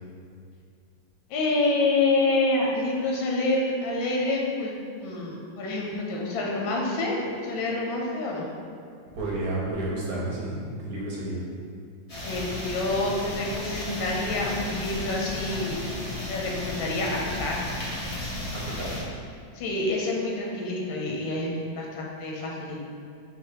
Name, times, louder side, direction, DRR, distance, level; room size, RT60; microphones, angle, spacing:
voice 1, 1.3-4.7 5.0-8.5 12.2-15.8 16.3-17.6 19.5-22.8, left 2 dB, 85° left, -2 dB, 1.4 m, -27 dB
voice 2, 9.1-11.4 18.5-18.9, right 2 dB, 60° right, -5 dB, 1.0 m, -31 dB
sound 1, 12.1-19.0, left 1 dB, 35° left, 0.6 m, -34 dB
3.8 x 2.8 x 4.7 m, 2.3 s
omnidirectional pair, 2.1 m